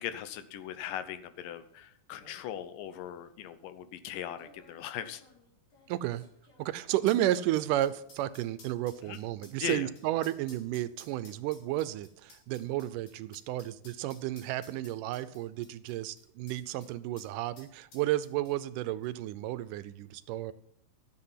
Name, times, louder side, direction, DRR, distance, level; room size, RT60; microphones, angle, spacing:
voice 1, 0.0-5.2 9.0-9.2 9.6-9.9, left 10 dB, 85° left, 11 dB, 2.5 m, -39 dB
sound 1, 1.7-1.8 2.0-2.4 3.2-3.3 4.2-16.9 17.2-17.3 17.6-18.8 19.0-19.1, left 3 dB, 70° left, 4.5 m, -57 dB
voice 2, 5.9-6.3 6.6-20.5, right 14 dB, 85° right, 15 dB, 2.2 m, -32 dB
13.5 x 7.8 x 5.7 m, 0.70 s
omnidirectional pair, 3.7 m